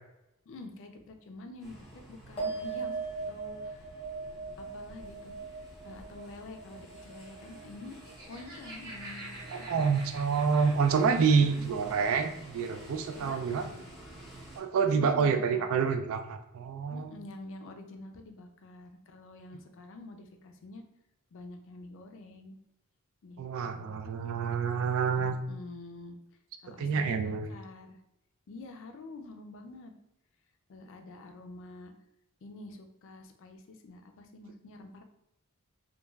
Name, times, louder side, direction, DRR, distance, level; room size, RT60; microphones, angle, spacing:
voice 1, 0.5-3.9 4.6-5.4 5.8-8.0 8.3-9.9 11.3-11.9 13.1-13.8 14.8-15.7 16.9-20.8 21.3-22.6 23.2-24.0 25.2-26.2 26.6-28.0 28.5-29.9 30.7-31.9 32.4-35.0, left 2 dB, 60° left, 5 dB, 0.4 m, -47 dB
sound 1, 1.6-14.6, right 1 dB, ahead, 0.8 m, -50 dB
sound 2, 2.4-9.1 9.3-10.0, right 4 dB, 25° left, 0.9 m, -40 dB
Laughter, 7.8-11.6, right 1 dB, 50° right, 1.0 m, -47 dB
voice 2, 9.5-13.6 14.6-17.1 23.4-25.4 26.8-27.5, right 5 dB, 65° right, 7 dB, 0.3 m, -27 dB
3.1 x 2.3 x 2.3 m, 0.83 s
head